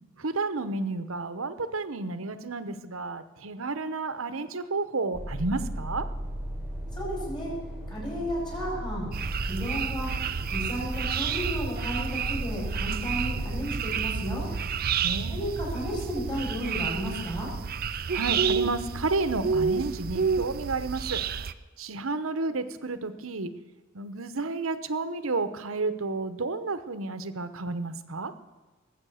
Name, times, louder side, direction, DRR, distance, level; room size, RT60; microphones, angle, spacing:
voice 1, 0.2-6.1 15.0-15.4 18.1-21.2 21.8-23.5 23.9-28.3, right 3 dB, 70° right, 11 dB, 1.0 m, -31 dB
sound 1, 5.1-13.6, equal, 5° right, 1.7 m, -36 dB
voice 2, 6.9-7.5 7.9-9.1 9.5-10.1 10.5-14.4 15.3-17.5, equal, 20° left, -3 dB, 5.7 m, -33 dB
sound 2, 9.1-21.5, right 6 dB, 45° right, 0.5 m, -30 dB
19.5 x 8.4 x 6.4 m, 1.3 s
head